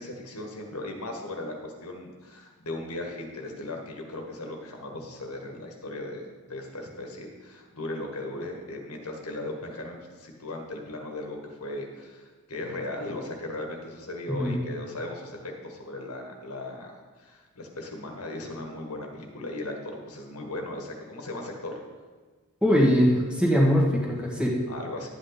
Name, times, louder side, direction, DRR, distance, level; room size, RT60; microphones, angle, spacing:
voice 1, 0.0-21.8 24.7-25.1, left 2 dB, 85° left, 2 dB, 1.6 m, -37 dB
voice 2, 22.6-24.5, equal, 5° right, -3 dB, 1.6 m, -22 dB
11.5 x 8.6 x 4.1 m, 1.4 s
head